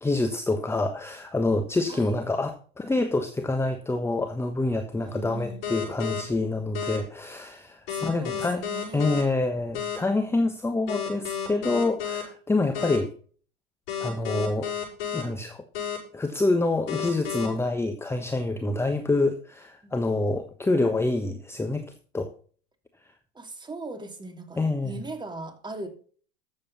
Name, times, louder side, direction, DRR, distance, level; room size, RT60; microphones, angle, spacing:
voice 1, 0.0-8.6 8.9-13.1 14.0-14.7 15.1-15.6 16.1-21.8 22.1-22.3 24.6-25.0, left 2 dB, 10° left, 7 dB, 1.1 m, -26 dB
voice 2, 5.0-5.6 7.9-9.0 19.8-19.9 23.3-25.9, right 2 dB, 15° right, 6 dB, 2.8 m, -39 dB
sound 1, 5.6-6.2 6.7-7.0 7.9-9.2 9.7-10.0 10.9-12.2 12.7-13.0 13.9-15.2 15.7-16.0 16.9-17.5, left 9 dB, 65° left, 6.9 m, -31 dB
13.5 x 7.8 x 4.2 m, 0.43 s
hypercardioid pair, 95°, 32 cm